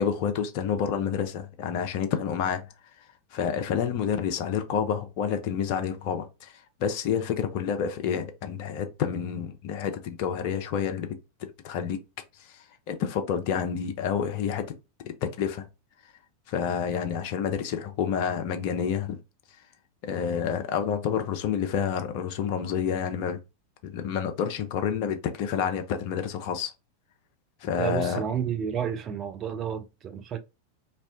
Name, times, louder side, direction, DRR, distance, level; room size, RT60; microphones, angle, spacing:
voice 1, 0.0-2.7 3.3-6.5 6.8-12.0 12.4-14.7 15.0-15.7 16.5-19.2 20.0-23.4 23.8-26.7 27.6-28.2, left 7 dB, 45° left, 0.4 m, -29 dB
voice 2, 27.8-30.4, right 8 dB, 30° right, 0.4 m, -31 dB
2.6 x 2.1 x 2.4 m
figure-of-eight pair, 90°, 0 cm